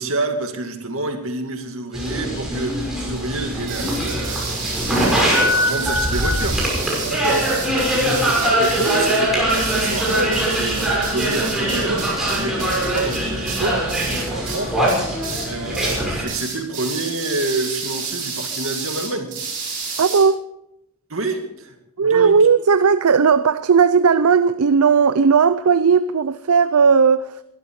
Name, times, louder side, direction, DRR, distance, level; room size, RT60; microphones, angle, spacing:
voice 1, 0.0-6.6 7.0-19.4 19.8-20.0 21.1-22.4, right 2 dB, 60° right, 2.5 m, -28 dB
sound 1, 1.9-16.2, equal, ahead, 6.2 m, -22 dB
sound 2, 3.6-14.6 14.9-15.5 15.7-16.0 16.3-20.2, right 5 dB, 40° right, 7.3 m, -30 dB
voice 2, 20.0-20.4 22.0-27.4, right 6 dB, 75° right, 0.5 m, -16 dB
21.5 x 12.5 x 4.8 m
head